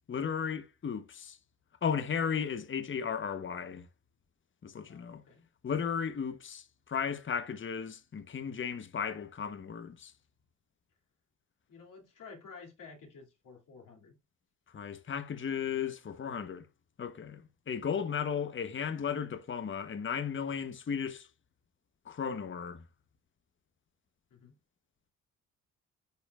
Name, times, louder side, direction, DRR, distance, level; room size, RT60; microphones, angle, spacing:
voice 1, 0.1-1.4 1.8-3.9 4.6-5.2 5.6-10.1 14.7-16.7 17.0-17.4 17.7-21.3 22.1-22.8, left 7 dB, 35° left, 0.9 m, -35 dB
voice 2, 4.9-5.5 11.7-14.2 24.3-24.6, left 4 dB, 65° left, 2.4 m, -52 dB
10.5 x 4.3 x 2.3 m
supercardioid pair, 60°, 34 cm